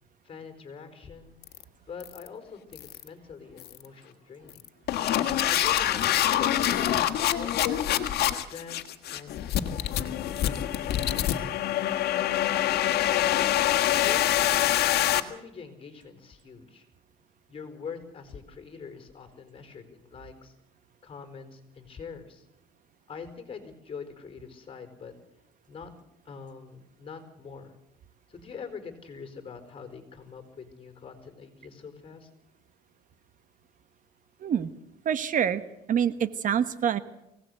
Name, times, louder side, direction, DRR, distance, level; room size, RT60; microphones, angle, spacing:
voice 1, 0.2-1.4 1.8-4.6 5.4-7.9 8.4-9.4 10.4-11.5 13.1-14.7 15.1-16.8 17.5-20.5 21.0-22.4 23.1-25.1 25.7-25.9 26.2-27.8 28.3-32.3, left 5 dB, 35° left, 8 dB, 4.8 m, -44 dB
sound 1, 1.4-1.6 2.0-2.3 2.7-3.1 3.6-3.9 4.5-15.2, left 12 dB, 70° left, 1.7 m, -25 dB
voice 2, 34.4-34.7 35.0-35.6 35.9-37.0, right 8 dB, 50° right, 13 dB, 1.3 m, -26 dB
24.0 x 17.5 x 8.1 m, 0.88 s
cardioid pair, 110°, 17 cm